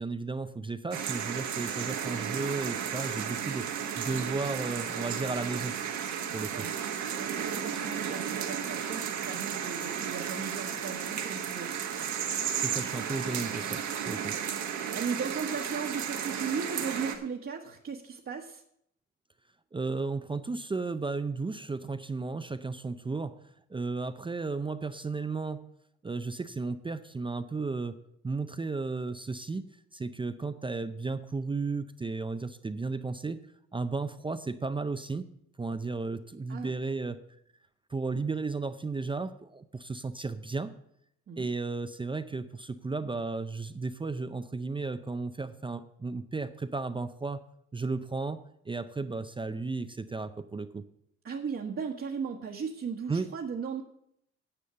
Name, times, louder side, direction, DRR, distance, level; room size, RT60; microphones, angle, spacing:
voice 1, 0.0-3.7 4.0-5.7 6.3-6.5 12.6-14.3 19.7-23.3 23.7-25.7 26.0-28.0 28.2-33.4 33.7-35.3 35.6-37.2 37.9-40.7 41.4-47.5 47.7-50.8 53.1-53.3, right 3 dB, 15° right, 10 dB, 0.5 m, -34 dB
sound 1, 0.9-17.2, right 8 dB, 75° right, 1.5 m, -34 dB
voice 2, 7.1-11.7 14.2-18.6 36.5-36.7 41.3-41.5 51.2-53.8, right 6 dB, 45° right, -1 dB, 1.3 m, -37 dB
10.0 x 7.1 x 6.8 m, 0.74 s
cardioid pair, 90°, 29 cm